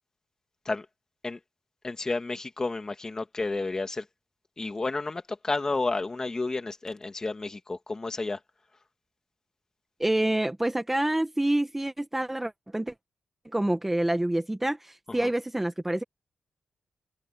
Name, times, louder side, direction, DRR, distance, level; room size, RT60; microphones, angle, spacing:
voice 1, 1.8-4.0 4.6-8.4 15.2-15.3, left 3 dB, 20° left, 2.0 m, -31 dB
voice 2, 10.0-12.9 13.5-16.0, right 1 dB, 10° right, 0.9 m, -27 dB
wide cardioid pair, 155°, 3 cm